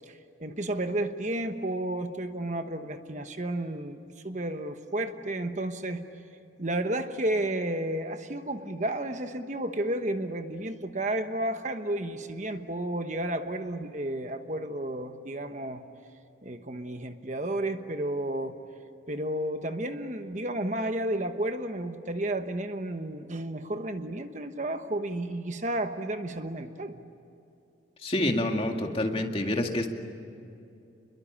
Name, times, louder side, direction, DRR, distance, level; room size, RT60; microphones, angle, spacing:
voice 1, 0.0-6.1 6.6-15.8 16.4-18.6 19.1-27.0, right 1 dB, 40° right, 7 dB, 1.1 m, -32 dB
voice 2, 28.0-29.9, left 1 dB, 30° left, 3 dB, 2.2 m, -27 dB
29.0 x 22.0 x 8.8 m, 2.7 s
head